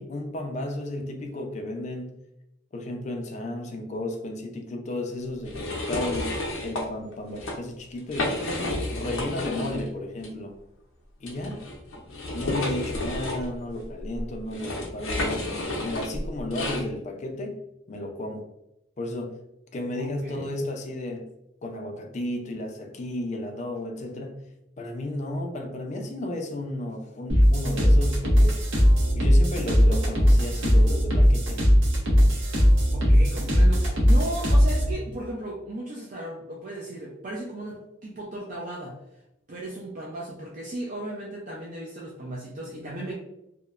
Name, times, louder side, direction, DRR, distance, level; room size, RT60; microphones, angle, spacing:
voice 1, 0.0-2.2 2.7-6.3 6.6-8.4 8.9-10.6 11.2-11.6 12.3-17.6 17.9-18.5 19.0-19.4 19.7-21.3 21.6-24.4 24.8-28.6 29.1-31.6, left 1 dB, 35° left, 0.3 m, -33 dB
sound 1, 5.4-6.8 7.3-7.5 8.0-9.9 10.2-10.3 11.2-16.8, left 1 dB, 90° left, 0.6 m, -31 dB
voice 2, 20.0-20.6 32.9-39.0 39.5-43.1, right 1 dB, 40° right, 0.4 m, -36 dB
sound 2, 27.3-34.9, equal, 75° right, 0.8 m, -19 dB
2.9 x 2.1 x 2.3 m
head